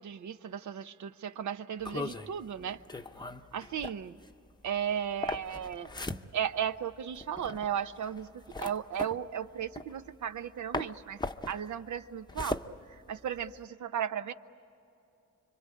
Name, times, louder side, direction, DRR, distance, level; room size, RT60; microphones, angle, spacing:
voice 1, 0.0-2.8 3.5-4.2 4.6-5.9 6.3-11.2 11.5-12.6 12.9-14.3, right 9 dB, 70° right, 11 dB, 0.9 m, -35 dB
sound 1, 1.8-10.5 10.7-13.6, left 2 dB, 15° left, 0.8 m, -39 dB
26.5 x 24.5 x 8.6 m, 2.7 s
cardioid pair, 85°, 31 cm